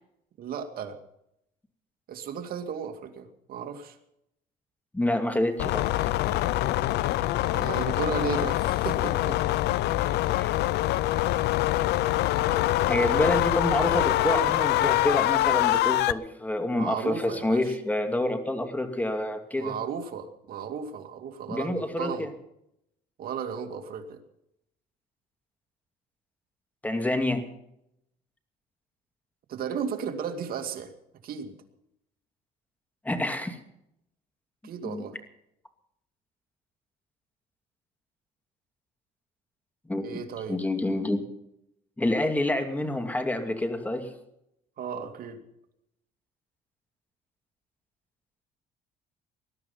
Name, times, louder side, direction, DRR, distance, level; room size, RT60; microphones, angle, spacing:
voice 1, 0.4-1.0 2.1-4.0 7.4-9.4 10.2-10.4 16.8-17.6 19.6-22.3 23.2-24.2 29.5-30.9 31.2-31.5 34.6-35.2 40.0-40.6 44.8-45.4, right 6 dB, 60° right, 6 dB, 2.4 m, -34 dB
voice 2, 4.9-6.1 10.4-10.5 12.9-19.7 21.5-22.3 26.8-27.4 33.0-33.6 34.8-35.0 39.9-40.1 40.5-41.2 42.0-44.1, left 1 dB, 10° left, 6 dB, 2.6 m, -27 dB
sound 1, 5.6-16.1, left 16 dB, 80° left, 0.6 m, -25 dB
20.0 x 12.0 x 5.7 m, 0.79 s
cardioid pair, 110°, 17 cm